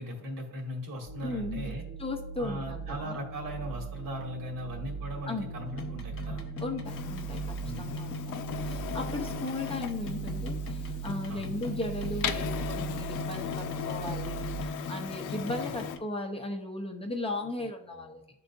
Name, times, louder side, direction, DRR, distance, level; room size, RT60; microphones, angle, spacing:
voice 1, 0.0-1.8 2.4-6.4 7.6-7.9 11.3-11.5, equal, 70° right, 0 dB, 2.1 m, -38 dB
sound 1, 1.1-14.6, right 5 dB, 30° right, 0.7 m, -39 dB
voice 2, 1.2-3.2 5.3-5.7 6.6-18.2, left 2 dB, 15° left, 2 dB, 0.7 m, -37 dB
sound 2, 5.6-16.0, left 2 dB, 40° left, 1.1 m, -39 dB
Printer, 6.8-16.0, left 10 dB, 60° left, 0.6 m, -39 dB
10.5 x 3.8 x 2.6 m, 0.78 s
cardioid pair, 105°, 35 cm